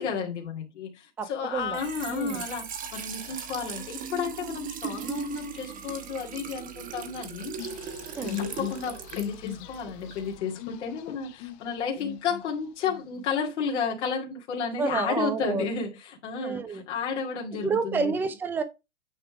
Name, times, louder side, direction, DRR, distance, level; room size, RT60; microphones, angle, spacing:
voice 1, 0.0-7.6 8.2-18.1, left 6 dB, 70° left, 2.1 m, -32 dB
voice 2, 1.2-1.8 2.1-2.4 8.2-8.4 14.8-15.7 16.4-16.8 17.6-18.6, right 5 dB, 5° right, 0.3 m, -29 dB
Trickle dribble / Fill (with liquid), 1.6-10.4, right 7 dB, 20° right, 1.0 m, -39 dB
sound 1, 7.6-12.4 12.8-13.3, left 15 dB, 35° left, 0.8 m, -38 dB
8.9 x 3.5 x 4.7 m
hypercardioid pair, 135°, 36 cm